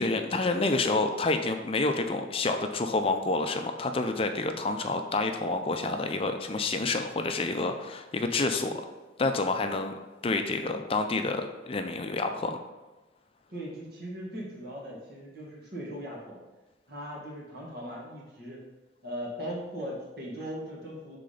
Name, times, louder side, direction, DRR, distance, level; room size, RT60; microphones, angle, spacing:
voice 1, 0.0-8.8 9.2-9.9 10.2-12.6, left 3 dB, 30° left, 6 dB, 0.4 m, -28 dB
voice 2, 13.5-16.4 16.9-18.6 19.0-21.2, equal, 55° right, -3 dB, 1.8 m, -39 dB
5.8 x 3.8 x 5.0 m, 1.2 s
head